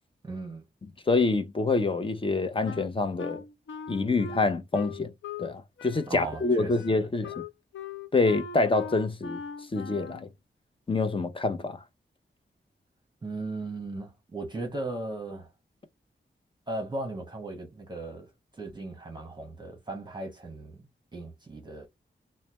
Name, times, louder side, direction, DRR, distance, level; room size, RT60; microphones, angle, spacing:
voice 1, 0.2-0.7 6.1-7.0 13.2-15.5 16.7-21.9, right 2 dB, 25° right, 1.0 m, -37 dB
voice 2, 1.1-3.4 3.9-5.1 5.4-7.3 8.1-9.4 9.7-10.3 10.9-11.8, left 3 dB, 25° left, 0.6 m, -26 dB
Wind instrument woodwind instrument, 2.7-5.5 5.8-10.3, left 5 dB, 85° left, 0.5 m, -41 dB
3.2 x 2.2 x 4.2 m
wide cardioid pair, 145°, 19 cm